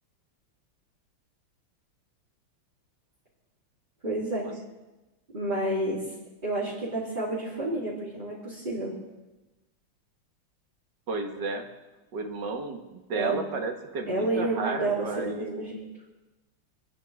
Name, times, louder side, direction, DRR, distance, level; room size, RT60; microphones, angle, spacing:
voice 1, 4.0-4.5 5.3-6.1 6.4-8.9 13.1-13.4 14.1-15.8, right 2 dB, 20° right, -8 dB, 3.2 m, -30 dB
voice 2, 11.1-11.7 12.1-15.7, right 3 dB, 55° right, 3 dB, 2.1 m, -33 dB
27.5 x 10.5 x 3.5 m, 1.1 s
omnidirectional pair, 2.4 m